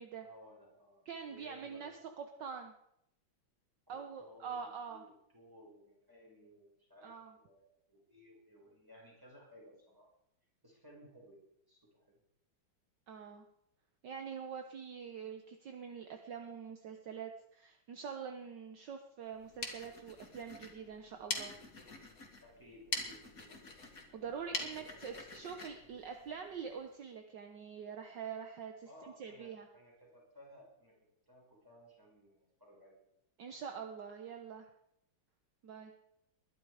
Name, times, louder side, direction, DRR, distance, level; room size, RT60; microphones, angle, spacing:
voice 1, 0.2-2.1 3.9-10.1 10.6-11.4 11.7-12.2 22.4-23.9 24.5-25.7 28.9-30.9 31.3-33.0, equal, 10° right, -3 dB, 6.0 m, -59 dB
voice 2, 1.0-1.9 2.2-2.7 3.9-5.0 7.0-7.3 13.1-13.4 14.0-21.5 24.1-28.9 29.2-29.7 33.4-34.7 35.6-35.9, right 6 dB, 60° right, 5 dB, 1.7 m, -45 dB
sound 1, 19.3-26.8, left 3 dB, 45° left, 2.6 m, -44 dB
21.0 x 11.5 x 4.9 m, 0.80 s
omnidirectional pair, 2.2 m